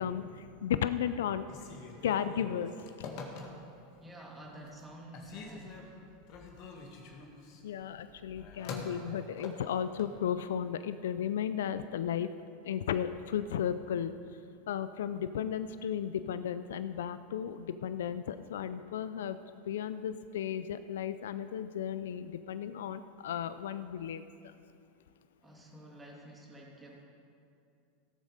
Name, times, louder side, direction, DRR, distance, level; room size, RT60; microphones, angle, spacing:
voice 1, 0.0-1.4 2.0-2.7 7.6-12.3 12.6-14.1 14.7-19.4 19.7-24.5, left 9 dB, 80° left, 12 dB, 0.4 m, -34 dB
Telephone, 1.4-3.9 4.4-4.9 5.1-10.2, left 4 dB, 55° left, 1.8 m, -45 dB
voice 2, 4.0-6.4 25.4-27.1, right 1 dB, 15° right, -2 dB, 2.8 m, -50 dB
16.5 x 7.3 x 5.0 m, 2.6 s
hypercardioid pair, 100°, 0 cm